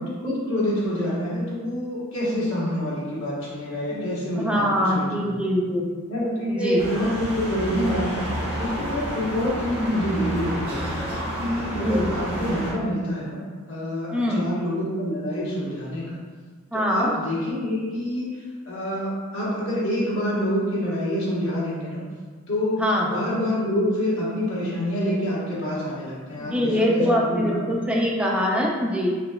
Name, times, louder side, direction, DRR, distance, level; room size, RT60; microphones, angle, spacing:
voice 1, 0.0-5.5 6.1-8.2 8.6-13.4 13.7-16.2 16.9-22.1 22.5-27.6, equal, 75° left, -8 dB, 1.3 m, -27 dB
voice 2, 3.9-5.9 6.5-6.9 11.7-12.1 14.1-14.5 16.7-17.1 22.8-23.1 26.4-29.1, equal, 5° right, -3 dB, 0.4 m, -23 dB
sound 1, 6.8-12.7, equal, 25° right, 1.1 m, -30 dB
4.1 x 3.2 x 2.2 m, 1.5 s
head